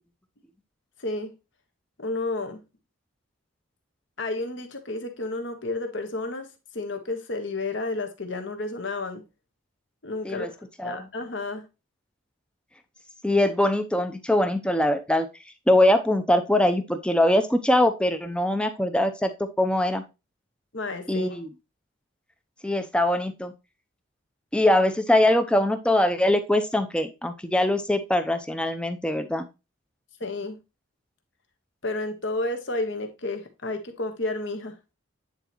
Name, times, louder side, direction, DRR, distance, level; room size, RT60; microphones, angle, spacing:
voice 1, 1.0-1.3 2.0-2.6 4.2-6.5 6.7-9.2 10.0-10.5 10.8-11.6 20.7-21.4 30.2-30.6 31.8-34.7, left 2 dB, 60° left, 1.2 m, -31 dB
voice 2, 13.2-15.3 15.7-20.0 21.1-21.5 22.6-23.5 24.5-29.5, left 1 dB, 5° left, 0.5 m, -22 dB
9.2 x 4.0 x 3.0 m
head